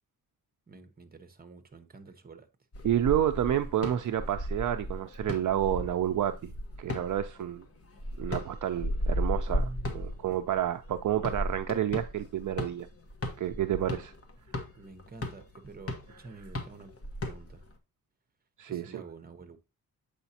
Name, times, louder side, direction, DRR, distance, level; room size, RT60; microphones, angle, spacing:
voice 1, 0.7-2.5 9.5-10.2 14.8-16.9 17.2-17.7 18.7-19.6, right 3 dB, 25° right, 1.0 m, -48 dB
sound 1, 2.7-17.7, left 1 dB, 40° left, 1.2 m, -35 dB
voice 2, 2.8-6.5 6.8-7.6 8.2-12.9 13.4-14.1 18.6-19.0, right 11 dB, 60° right, 0.5 m, -29 dB
7.9 x 5.0 x 2.8 m
wide cardioid pair, 120°, 35 cm